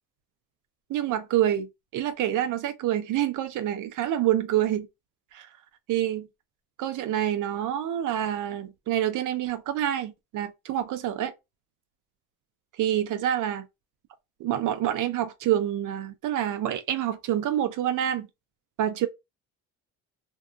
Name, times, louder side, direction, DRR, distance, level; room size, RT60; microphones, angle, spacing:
voice 1, 0.9-1.7 1.9-4.9 5.3-5.5 5.9-6.3 6.8-11.3 12.8-13.6 14.4-18.3 18.8-19.1, right 11 dB, 60° right, 0.5 m, -27 dB
2.7 x 2.4 x 2.3 m
cardioid pair, 90°, 34 cm